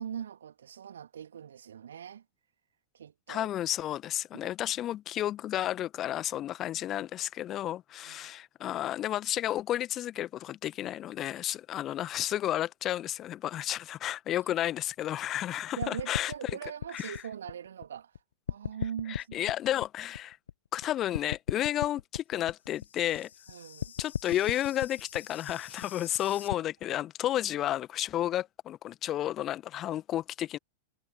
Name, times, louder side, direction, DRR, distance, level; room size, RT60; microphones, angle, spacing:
voice 1, 0.0-2.2 2.9-3.5 4.3-4.5 8.0-8.3 15.8-18.1 18.5-19.4 23.5-23.9, right 9 dB, 65° right, 2.7 m, -41 dB
voice 2, 3.3-16.3 16.9-17.2 19.1-20.4 20.7-23.3 24.0-30.6, left 12 dB, 30° left, 1.4 m, -32 dB
sound 1, 15.8-18.2 18.5-20.8 21.1-26.5, left 9 dB, 65° left, 0.8 m, -38 dB
figure-of-eight pair, 90°, 0 cm